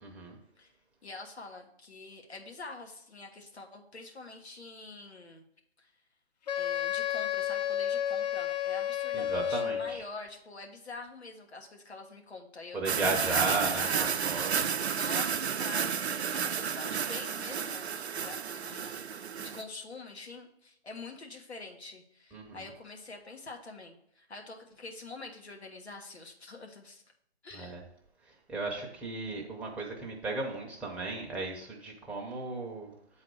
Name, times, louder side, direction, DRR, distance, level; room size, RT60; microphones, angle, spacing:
voice 1, 0.0-0.4 9.1-10.0 12.7-14.7 22.3-22.6 27.5-27.8 28.5-32.9, right 2 dB, 5° right, -1 dB, 0.7 m, -35 dB
voice 2, 1.0-5.4 5.8-5.9 6.5-14.1 14.9-27.0 27.4-27.8, left 3 dB, 85° left, 2 dB, 1.5 m, -45 dB
Wind instrument woodwind instrument, 6.5-10.0, left 10 dB, 40° left, 0.6 m, -31 dB
sound 1, 12.9-19.6, right 7 dB, 90° right, 0.5 m, -31 dB
7.8 x 4.1 x 4.7 m, 0.71 s
figure-of-eight pair, 135°, 32 cm